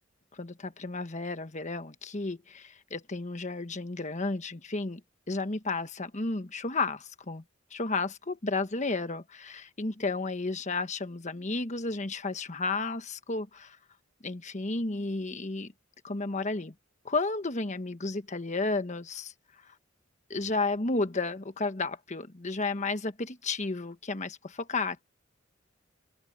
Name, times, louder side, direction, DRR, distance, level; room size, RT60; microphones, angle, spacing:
voice 1, 0.3-5.0 5.3-7.4 7.7-13.8 14.2-15.7 16.0-16.7 17.0-19.3 19.7-19.8 20.3-25.0, left 3 dB, 35° left, 1.3 m, -32 dB
open air
head